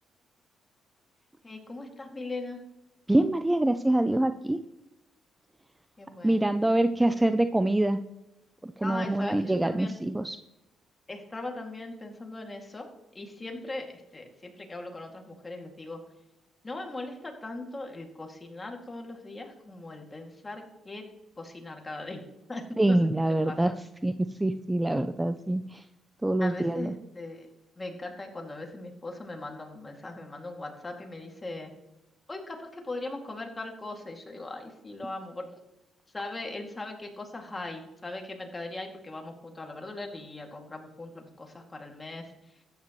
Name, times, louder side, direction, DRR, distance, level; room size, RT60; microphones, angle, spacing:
voice 1, 1.4-2.6 6.0-6.5 8.8-9.9 11.1-16.0 16.6-21.1 21.4-22.2 22.5-23.0 23.3-23.7 26.4-27.5 27.8-31.7 32.3-35.6 36.1-42.6, left 2 dB, 20° left, 2 dB, 2.3 m, -39 dB
voice 2, 3.1-4.6 6.2-8.0 8.6-10.4 22.8-23.7 24.0-25.9 26.2-26.9, right 1 dB, 10° right, 10 dB, 0.4 m, -25 dB
13.5 x 9.5 x 3.1 m, 0.92 s
cardioid pair, 90°, 0 cm